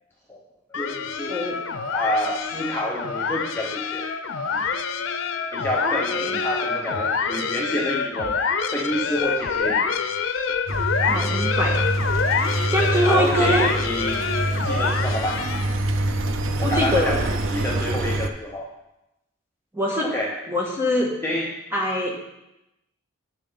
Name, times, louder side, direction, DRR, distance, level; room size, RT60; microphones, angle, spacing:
sound 1, 0.7-15.9, left 5 dB, 85° left, 0.6 m, -26 dB
voice 1, 0.7-1.4 1.9-4.0 4.5-4.6 5.5-8.3 8.7-9.9 13.0-14.2 14.6-15.5 16.6-18.7 20.0-20.3 21.2-21.5, left 1 dB, 10° left, -4 dB, 0.9 m, -28 dB
voice 2, 1.3-1.6 5.8-6.4 11.0-11.8 12.7-13.7 16.6-17.1 19.7-20.1 20.5-21.1 21.7-22.1, equal, 15° right, -2 dB, 1.6 m, -24 dB
Engine, 10.7-18.3, right 1 dB, 90° right, 0.6 m, -25 dB
9.8 x 7.2 x 3.9 m, 0.91 s
head